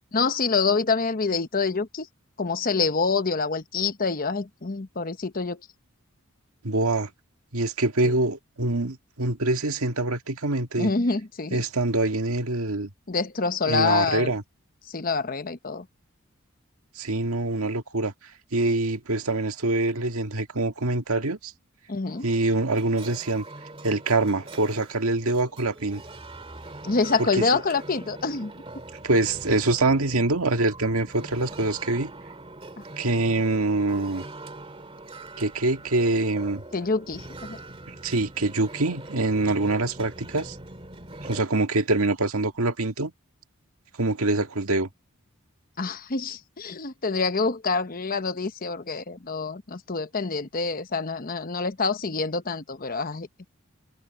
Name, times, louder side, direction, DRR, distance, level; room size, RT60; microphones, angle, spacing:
voice 1, 0.1-2.1 2.4-5.6 8.0-8.1 10.8-11.6 13.1-14.3 14.9-15.8 21.9-22.3 26.8-28.5 36.7-37.6 45.8-53.3, left 4 dB, 40° left, 1.0 m, -26 dB
voice 2, 6.6-7.1 7.5-10.9 11.5-12.9 13.7-14.4 17.0-18.1 18.5-21.5 22.2-23.4 23.8-26.0 27.2-27.6 29.0-32.1 33.0-34.3 35.4-36.6 37.9-40.6 41.2-43.1 44.0-44.9, right 2 dB, 85° right, 1.8 m, -25 dB
sound 1, 22.1-41.4, right 2 dB, 25° right, 2.4 m, -43 dB
head